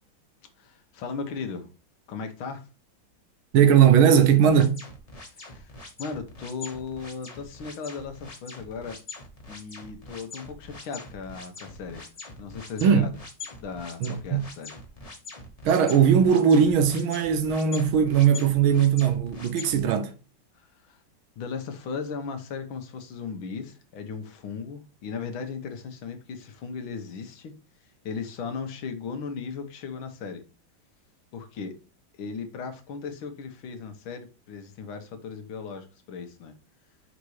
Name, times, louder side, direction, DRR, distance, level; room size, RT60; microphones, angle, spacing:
voice 1, 0.6-1.7 2.1-2.7 5.3-5.7 6.0-9.0 9.5-12.1 12.4-13.1 13.6-14.8 20.6-21.0 21.4-27.6 28.0-30.4 31.3-31.8 32.2-36.5, left 5 dB, 85° left, 1.9 m, -37 dB
voice 2, 3.5-4.8 12.8-13.1 14.0-14.4 15.7-20.1, right 8 dB, 85° right, 1.8 m, -19 dB
sound 1, 4.5-19.8, left 3 dB, 25° left, 1.1 m, -43 dB
5.9 x 4.1 x 4.7 m
omnidirectional pair, 2.2 m